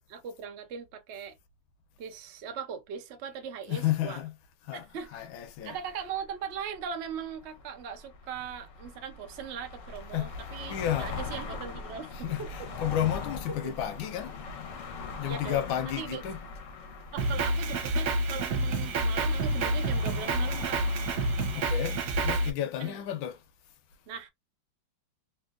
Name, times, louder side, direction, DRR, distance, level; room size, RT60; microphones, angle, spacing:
voice 1, 0.1-1.4 2.0-4.2 4.7-5.2 5.6-12.5 15.2-16.2 17.1-20.8 22.8-23.0 24.1-24.3, right 7 dB, 90° right, 0.6 m, -39 dB
voice 2, 3.6-5.8 10.1-10.3 10.7-11.2 12.1-14.4 15.2-16.4 21.5-23.4, left 11 dB, 90° left, 1.4 m, -32 dB
sound 1, 5.0-21.6, left 4 dB, 60° left, 0.8 m, -41 dB
Drum kit, 17.2-22.5, right 1 dB, 60° right, 1.3 m, -28 dB
3.4 x 2.6 x 2.4 m
omnidirectional pair, 2.1 m